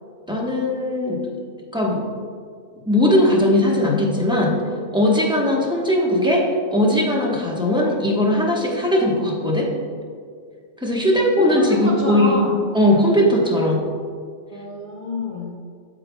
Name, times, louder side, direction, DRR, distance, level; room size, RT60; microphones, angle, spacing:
voice 1, 0.3-1.2 1.7-2.0 2.9-4.6 4.9-9.7 10.8-12.4 12.7-13.8, left 1 dB, 5° right, -3 dB, 0.9 m, -19 dB
voice 2, 11.0-12.6 14.5-15.6, left 2 dB, 30° left, -4 dB, 0.7 m, -29 dB
8.8 x 8.1 x 2.2 m, 2.1 s
omnidirectional pair, 1.4 m